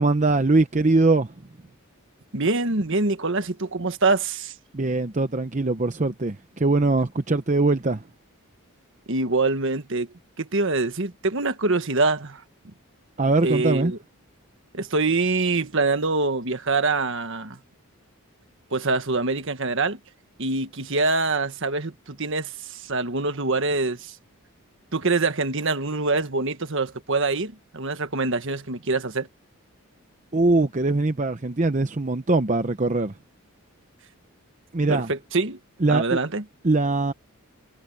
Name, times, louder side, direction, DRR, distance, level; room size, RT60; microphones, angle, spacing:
voice 1, 0.0-1.3 4.7-8.0 13.2-13.9 30.3-33.1 34.7-35.1 35.8-36.2 36.6-37.1, right 2 dB, 35° right, 0.8 m, -22 dB
voice 2, 2.3-4.5 9.1-10.1 10.4-12.4 13.4-14.0 14.7-17.6 18.7-20.0 20.4-24.1 24.9-29.3 34.9-35.6 35.9-36.4, right 3 dB, 55° right, 1.5 m, -24 dB
head